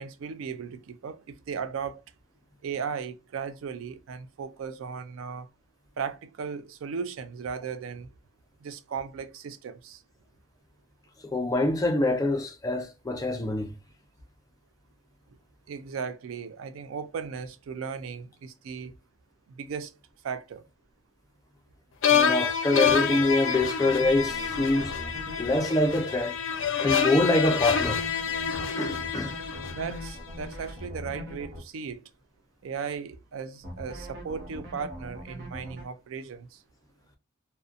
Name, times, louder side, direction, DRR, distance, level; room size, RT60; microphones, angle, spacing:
voice 1, 0.0-2.0 2.6-5.5 6.0-8.1 8.6-10.0 15.7-18.9 19.5-19.9 20.2-20.6 29.7-32.1 32.6-36.6, right 6 dB, 85° right, 0.4 m, -36 dB
voice 2, 11.3-13.7 22.1-24.9 25.4-26.4 26.8-28.0 28.7-29.3, left 2 dB, 20° left, 0.4 m, -25 dB
sound 1, 22.0-30.2, left 7 dB, 75° left, 0.5 m, -27 dB
sound 2, 24.0-25.6 27.6-31.6 33.6-35.8, left 1 dB, 50° right, 0.7 m, -41 dB
2.6 x 2.1 x 2.4 m
head